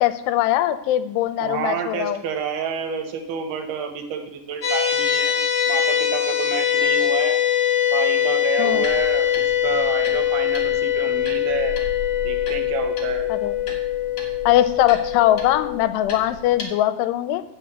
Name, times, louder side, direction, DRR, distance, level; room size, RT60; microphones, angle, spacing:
voice 1, 0.0-2.2 8.6-8.8 13.3-13.6 14.5-17.4, left 13 dB, 90° left, 12 dB, 2.7 m, -21 dB
voice 2, 1.4-5.4 5.7-7.4 7.9-11.8 12.2-13.3, right 7 dB, 75° right, 5 dB, 2.8 m, -29 dB
sound 1, 4.6-15.8, left 10 dB, 35° left, 1.4 m, -22 dB
sound 2, 8.7-16.6, left 3 dB, 55° left, 1.6 m, -37 dB
7.7 x 6.0 x 7.9 m, 0.82 s
omnidirectional pair, 4.8 m